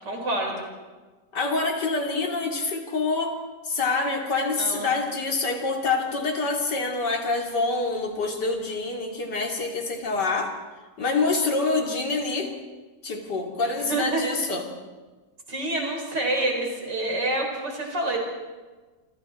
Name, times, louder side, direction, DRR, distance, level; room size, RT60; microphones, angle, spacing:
voice 1, 0.0-0.7 4.6-4.9 13.9-14.3 15.5-18.2, right 2 dB, 80° right, 1 dB, 5.4 m, -27 dB
voice 2, 1.3-3.4 3.6-10.5 11.0-12.5 13.0-14.6, left 3 dB, 75° left, 2 dB, 3.3 m, -26 dB
28.5 x 25.5 x 4.4 m, 1.3 s
omnidirectional pair, 1.8 m